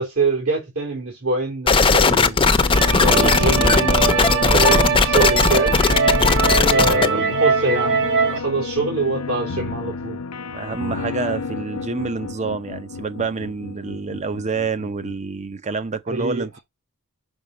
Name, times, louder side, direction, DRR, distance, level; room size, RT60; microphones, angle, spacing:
voice 1, 0.0-2.4 3.0-5.8 6.7-10.2 16.1-16.6, right 2 dB, 75° right, 3.6 m, -24 dB
sound 1, 1.7-15.1, left 4 dB, 85° left, 0.7 m, -32 dB
sound 2, 1.7-7.1, left 4 dB, 25° left, 0.6 m, -17 dB
sound 3, 2.7-8.4, right 5 dB, 55° right, 1.3 m, -22 dB
voice 2, 2.9-3.8 6.9-7.3 10.5-16.6, right 4 dB, 30° right, 0.6 m, -28 dB
5.9 x 5.2 x 4.1 m
head